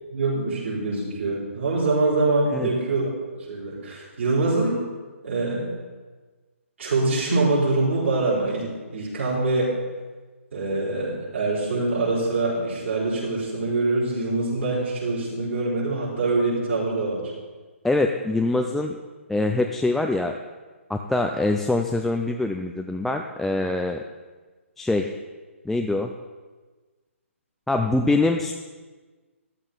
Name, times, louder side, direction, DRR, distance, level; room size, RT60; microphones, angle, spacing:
voice 1, 0.1-3.1 3.5-4.8 5.2-5.7 6.8-9.7 10.5-17.3, right 2 dB, 60° right, -7 dB, 4.5 m, -24 dB
voice 2, 17.8-19.0 19.3-20.4 20.9-24.0 24.8-25.1 25.6-26.1 27.7-28.5, left 2 dB, 5° left, 3 dB, 0.4 m, -24 dB
13.0 x 12.5 x 4.0 m, 1.3 s
figure-of-eight pair, 135°, 7 cm